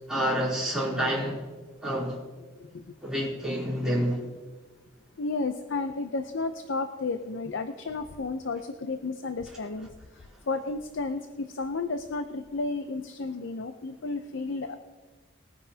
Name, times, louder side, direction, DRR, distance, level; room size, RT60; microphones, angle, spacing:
voice 1, 0.1-1.4 1.8-2.2 3.0-4.2, equal, 5° right, -7 dB, 3.3 m, -28 dB
voice 2, 5.2-9.9 10.5-14.8, left 3 dB, 75° left, 8 dB, 0.6 m, -32 dB
20.5 x 9.9 x 2.8 m, 1.3 s
head